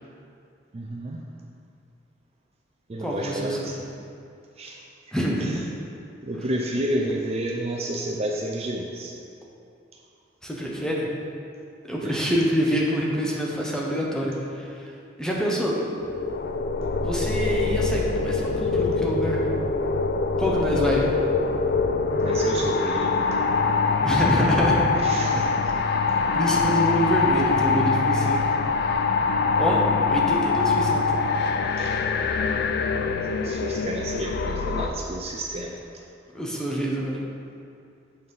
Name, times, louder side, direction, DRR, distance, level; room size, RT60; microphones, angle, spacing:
voice 1, 0.7-1.2 2.9-3.8 4.6-4.8 5.4-5.5 6.2-9.1 12.0-12.4 22.2-23.3 25.0-25.7 28.2-28.3 31.8-32.0 33.4-35.8, right 1 dB, 35° right, 0 dB, 0.5 m, -30 dB
voice 2, 3.0-3.8 5.1-5.6 10.4-11.1 11.9-14.8 15.2-15.8 17.0-19.4 20.4-21.1 24.0-24.8 26.3-28.4 29.6-31.1 36.3-37.2, equal, 5° left, -3 dB, 0.9 m, -26 dB
sound 1, 16.0-34.9, left 4 dB, 55° left, 0.4 m, -24 dB
7.8 x 4.0 x 5.5 m, 2.5 s
head